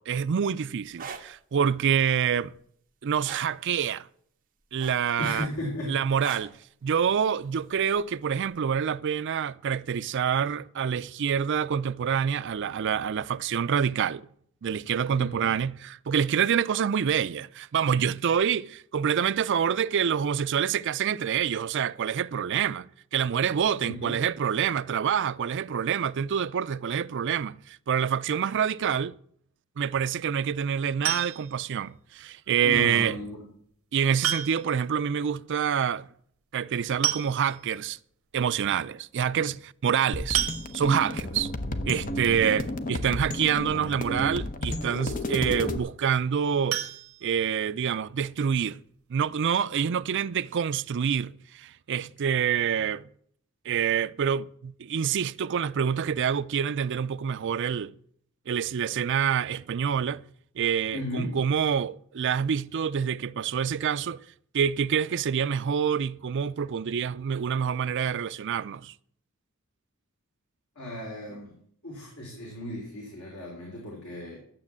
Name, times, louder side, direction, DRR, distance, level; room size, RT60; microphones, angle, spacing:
voice 1, 0.0-2.5 3.0-4.1 4.7-5.5 5.9-6.6 6.8-14.3 14.6-29.2 29.8-33.2 33.9-36.1 36.5-38.0 38.3-40.4 40.7-41.5 41.9-46.8 47.2-48.8 49.1-53.0 53.7-57.9 58.5-60.2 60.6-64.2 64.5-68.9, right 7 dB, 55° right, 0.4 m, -27 dB
sound 1, 0.9-1.2 3.2-3.5 4.8-5.2 6.2-6.6 8.0-8.1, right 6 dB, 40° right, 1.4 m, -37 dB
voice 2, 5.2-6.0 15.1-15.5 23.8-24.1 32.6-33.5 60.9-61.4 70.7-71.6 71.8-74.4, left 1 dB, 75° left, 3.3 m, -35 dB
sound 2, 31.0-31.7 33.2-33.3 34.2-34.8 35.1-35.2 35.5-35.6 36.6-36.7 37.0-37.7 38.3-38.4 38.7-38.9 40.3-41.2 46.7-47.9 48.2-48.3 48.8-48.9 49.2-49.3, right 11 dB, 75° right, 1.0 m, -31 dB
sound 3, 40.1-45.8, left 1 dB, 35° left, 0.9 m, -32 dB
12.0 x 8.1 x 7.4 m
head